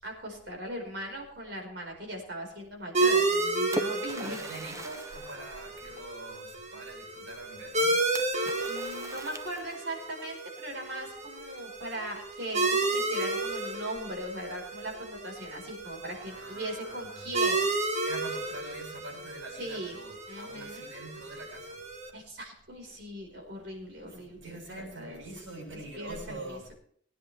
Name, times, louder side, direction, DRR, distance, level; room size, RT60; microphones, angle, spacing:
voice 1, 0.0-4.4 8.7-17.7 19.6-20.0 20.3-20.8 22.1-25.2 26.0-26.6, right 1 dB, 65° right, 0 dB, 4.8 m, -39 dB
sound 1, 2.9-22.1, right 2 dB, 40° right, 1.6 m, -32 dB
Splash splatter, 3.2-6.4 8.2-10.1, right 1 dB, 15° right, 0.7 m, -41 dB
voice 2, 4.2-7.9 16.2-17.3 18.0-21.8 24.1-26.7, right 2 dB, 85° right, -2 dB, 7.7 m, -44 dB
21.5 x 10.0 x 3.4 m, 0.62 s
head